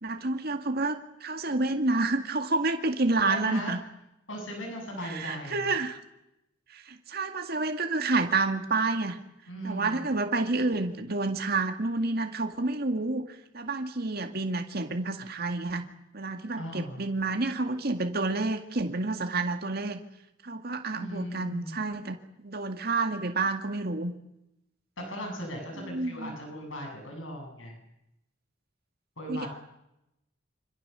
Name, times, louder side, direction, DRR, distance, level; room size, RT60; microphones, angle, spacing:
voice 1, 0.0-3.8 5.1-6.0 6.7-9.2 9.6-13.3 13.5-15.9 16.1-20.0 20.4-22.2 22.4-24.1 25.8-26.4 29.3-29.5, right 3 dB, 50° right, 6 dB, 2.1 m, -29 dB
voice 2, 3.2-3.8 4.3-5.8 9.5-10.0 16.6-17.0 20.9-21.7 25.0-27.7 29.2-29.5, equal, 80° left, 2 dB, 7.9 m, -38 dB
26.5 x 26.0 x 6.9 m, 0.87 s
head